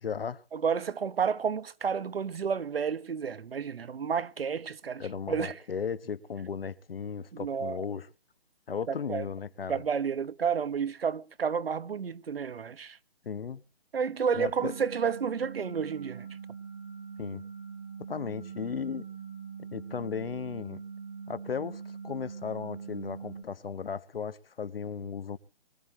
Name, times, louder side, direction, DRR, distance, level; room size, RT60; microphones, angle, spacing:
voice 1, 0.0-0.4 5.0-8.1 8.7-9.8 13.2-13.6 14.3-14.7 17.2-17.4 18.1-19.1 19.7-20.8 21.3-25.4, left 6 dB, 65° left, 1.2 m, -36 dB
voice 2, 0.5-5.6 7.3-7.8 8.9-9.3 9.7-13.0 13.9-16.3, right 6 dB, 65° right, 1.2 m, -31 dB
sound 1, 14.6-23.4, right 6 dB, 10° right, 1.6 m, -43 dB
24.0 x 14.5 x 2.8 m
hypercardioid pair, 170°, 32 cm